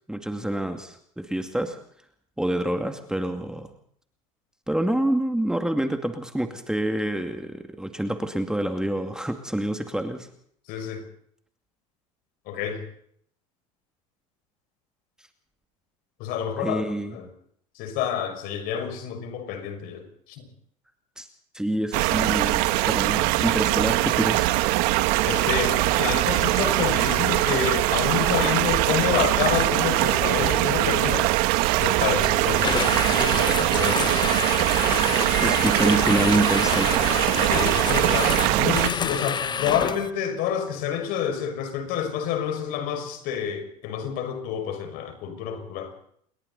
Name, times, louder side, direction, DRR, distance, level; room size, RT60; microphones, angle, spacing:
voice 1, 0.1-1.8 2.4-3.7 4.7-10.3 16.6-17.2 21.2-21.3 21.5-24.6 35.4-37.2, right 1 dB, 5° right, 6 dB, 2.3 m, -27 dB
voice 2, 10.7-11.0 12.5-12.8 16.2-16.8 17.1-17.3 17.8-20.4 25.3-31.3 31.8-34.3 37.5-45.9, left 8 dB, 60° left, 7 dB, 6.1 m, -28 dB
sound 1, 21.9-38.9, right 17 dB, 60° right, 1.6 m, -22 dB
sound 2, 32.3-38.8, right 4 dB, 20° right, 2.4 m, -38 dB
sound 3, 32.5-40.1, left 6 dB, 25° left, 1.1 m, -29 dB
28.0 x 22.0 x 4.1 m, 0.64 s
hypercardioid pair, 80°, 17 cm